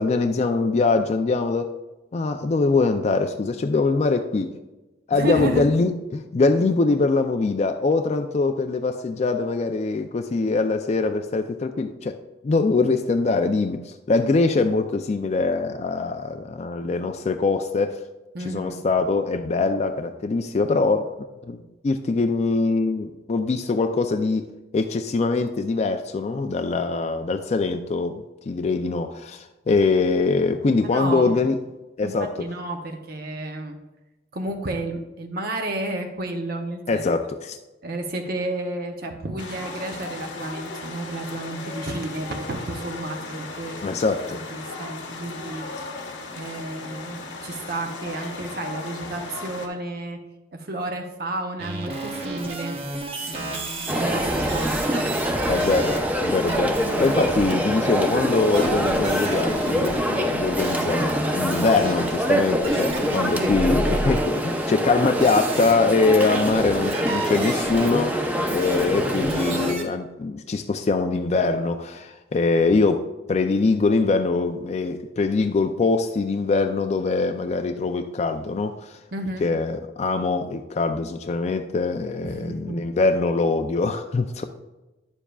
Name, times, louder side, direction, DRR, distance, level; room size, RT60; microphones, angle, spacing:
voice 1, 0.0-1.7 2.1-4.6 5.1-18.0 18.4-21.1 21.4-31.6 32.0-32.3 36.9-37.6 43.8-44.4 55.5-79.0 79.4-84.4, left 3 dB, 35° left, 6 dB, 0.3 m, -23 dB
voice 2, 5.1-5.7 18.3-18.8 30.8-31.4 32.0-33.8 34.3-37.0 37.8-43.9 44.5-45.7 46.3-52.8 53.2-55.4 63.2-63.5 79.1-79.4 82.2-82.8, right 2 dB, 55° right, 3 dB, 0.7 m, -32 dB
sound 1, 39.4-49.7, left 3 dB, 90° left, 1.2 m, -36 dB
sound 2, 51.6-56.0 56.5-57.5 58.5-61.1 61.5-62.2 62.6-65.7 66.2-69.8, right 2 dB, 35° right, 1.1 m, -32 dB
sound 3, 53.9-69.7, equal, 10° right, 0.6 m, -25 dB
9.9 x 7.1 x 2.3 m, 1.1 s
head